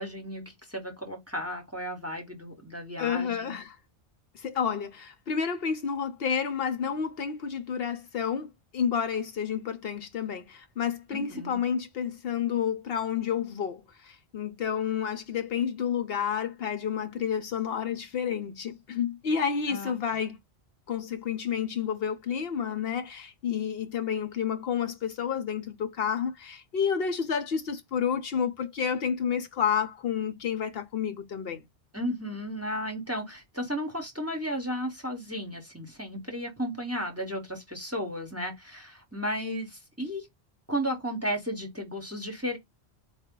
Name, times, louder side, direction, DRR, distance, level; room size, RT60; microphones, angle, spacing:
voice 1, 0.0-3.5 11.1-11.6 19.7-20.0 31.9-40.3 40.7-42.6, equal, 15° right, 1.0 m, -34 dB
voice 2, 3.0-3.8 4.3-20.4 20.9-31.6, left 7 dB, 70° left, 0.9 m, -30 dB
4.2 x 2.2 x 3.6 m
omnidirectional pair, 1.1 m